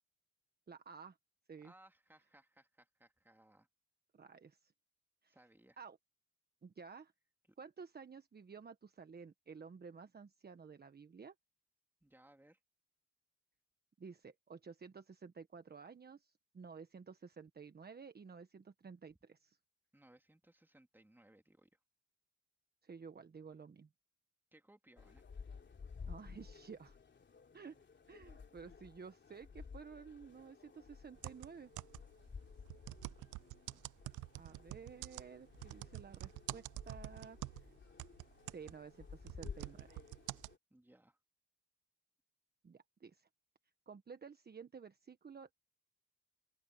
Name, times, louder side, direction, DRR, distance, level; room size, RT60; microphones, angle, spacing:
voice 1, 0.7-1.2 1.5-1.7 4.1-4.7 5.2-5.4 5.8-6.0 6.6-7.1 7.6-11.3 14.0-19.6 22.8-23.9 26.1-27.0 27.5-27.8 28.1-31.7 34.4-37.7 38.5-40.1 42.6-43.3 43.9-45.5, right 5 dB, 30° right, 1.4 m, -53 dB
voice 2, 1.6-3.7 5.3-5.8 7.5-7.6 12.0-12.6 19.9-21.8 24.5-25.2 40.7-41.2, right 1 dB, 5° right, 2.9 m, -65 dB
sound 1, 25.0-40.6, left 5 dB, 40° left, 3.2 m, -54 dB
sound 2, 31.2-32.2 32.7-37.7 38.0-40.5, right 19 dB, 90° right, 0.6 m, -47 dB
cardioid pair, 90°, 30 cm